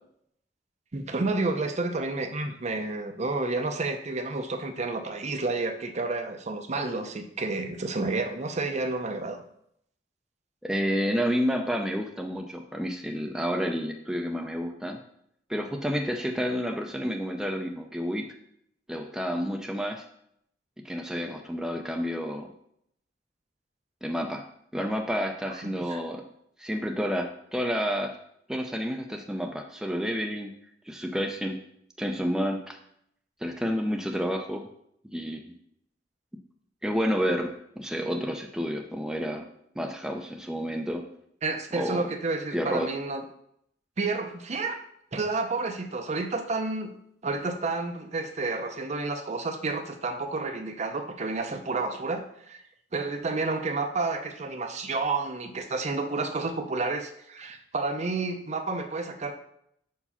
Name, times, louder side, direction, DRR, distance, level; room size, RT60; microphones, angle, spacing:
voice 1, 0.9-9.4 25.5-26.0 41.4-43.2 44.0-44.8 45.1-46.9 47.2-52.6 52.9-59.3, right 3 dB, 40° right, 6 dB, 0.7 m, -30 dB
voice 2, 10.6-15.0 15.5-18.3 18.9-20.0 20.8-22.5 24.0-24.4 24.7-26.2 26.6-28.1 28.5-30.5 30.9-31.6 32.0-32.8 33.4-34.7 35.0-35.5 36.8-37.5 37.8-39.5 39.8-41.0 41.7-42.1 42.5-42.9, equal, 5° right, 3 dB, 0.5 m, -30 dB
5.5 x 4.7 x 5.6 m, 0.71 s
head